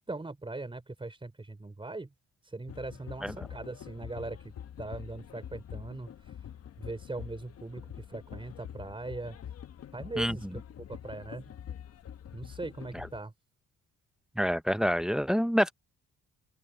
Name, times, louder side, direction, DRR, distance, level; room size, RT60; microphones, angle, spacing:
voice 1, 0.0-2.1 2.4-4.5 4.8-6.4 6.8-9.4 9.9-10.5 10.9-11.4 12.3-13.3, right 2 dB, 15° right, 4.5 m, -40 dB
sound 1, 2.7-13.2, left 9 dB, 55° left, 1.1 m, -45 dB
voice 2, 14.4-15.7, equal, ahead, 0.6 m, -27 dB
open air
cardioid pair, 90°, 30 cm